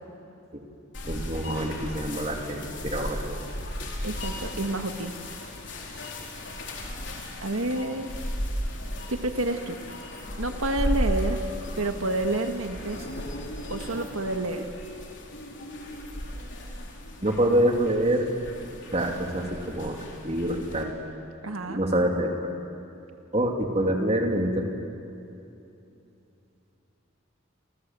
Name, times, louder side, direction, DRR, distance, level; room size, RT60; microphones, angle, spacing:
sound 1, 0.9-20.8, left 1 dB, 60° left, 4.0 m, -35 dB
voice 1, 1.0-3.4 17.2-18.3 18.9-20.0 20.2-20.9 21.6-22.3 23.3-24.7, right 1 dB, 30° right, 2 dB, 3.0 m, -26 dB
voice 2, 4.0-5.1 7.4-8.1 9.1-9.8 10.4-11.4 11.8-13.1 13.7-14.7 21.4-21.8, right 2 dB, 90° right, 6 dB, 1.7 m, -29 dB
29.5 x 27.0 x 7.6 m, 2.8 s
head